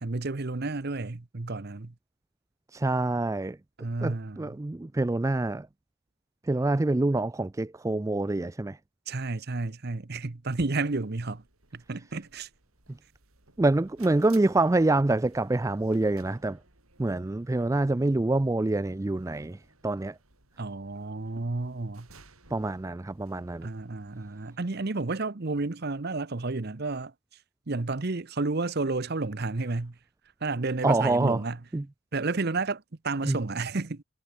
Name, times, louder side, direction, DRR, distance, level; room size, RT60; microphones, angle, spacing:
voice 1, 0.0-1.9 3.8-4.6 9.1-11.4 11.7-12.5 20.6-22.1 23.6-27.1 27.7-29.9 30.4-31.6 32.1-34.0, right 3 dB, 50° right, 0.9 m, -31 dB
voice 2, 2.7-3.6 4.0-5.7 6.5-8.8 13.6-16.6 17.0-19.6 19.8-20.1 22.5-23.7 30.8-31.4 31.7-31.8 33.2-33.4, right 2 dB, 15° right, 0.3 m, -26 dB
sound 1, 10.8-24.6, right 4 dB, 85° right, 5.8 m, -59 dB
head